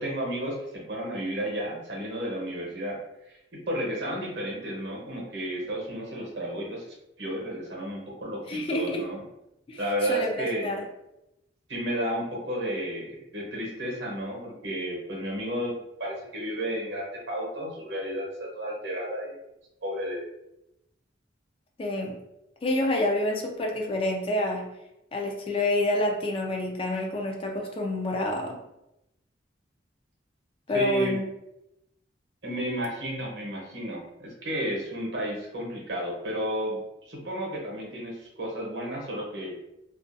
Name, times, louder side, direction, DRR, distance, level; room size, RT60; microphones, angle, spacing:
voice 1, 0.0-3.0 3.3-6.9 7.2-9.2 9.8-10.7 11.7-19.4 19.8-20.2 30.7-31.2 32.4-39.5, equal, 65° right, -2 dB, 0.8 m, -32 dB
voice 2, 8.5-9.0 9.7-10.9 21.8-22.2 22.6-24.7 25.1-28.6 30.7-31.2, left 1 dB, 30° left, 1 dB, 0.3 m, -28 dB
2.4 x 2.2 x 2.5 m, 0.88 s
head